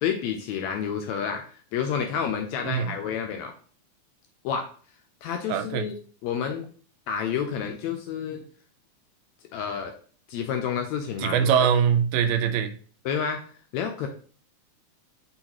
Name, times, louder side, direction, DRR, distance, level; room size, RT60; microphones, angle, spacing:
voice 1, 0.0-3.5 4.4-4.7 5.2-5.9 6.2-6.6 7.1-8.4 9.5-9.9 10.3-11.7 13.0-13.4 13.7-14.1, left 7 dB, 80° left, 4 dB, 1.6 m, -29 dB
voice 2, 5.5-5.9 11.2-12.7, right 8 dB, 80° right, 6 dB, 1.5 m, -23 dB
4.4 x 3.9 x 2.9 m, 0.43 s
omnidirectional pair, 3.6 m